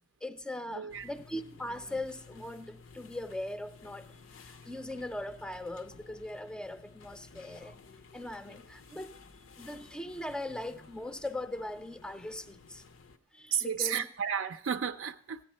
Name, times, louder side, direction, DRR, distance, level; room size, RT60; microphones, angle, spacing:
voice 1, 0.2-4.1 4.4-7.8 8.1-9.2 9.6-12.8 13.3-14.1, left 1 dB, 5° left, 0.4 m, -40 dB
voice 2, 0.7-1.1 13.5-15.4, right 7 dB, 85° right, 0.4 m, -33 dB
sound 1, 0.9-13.2, left 4 dB, 85° left, 0.6 m, -54 dB
15.0 x 9.9 x 4.3 m
head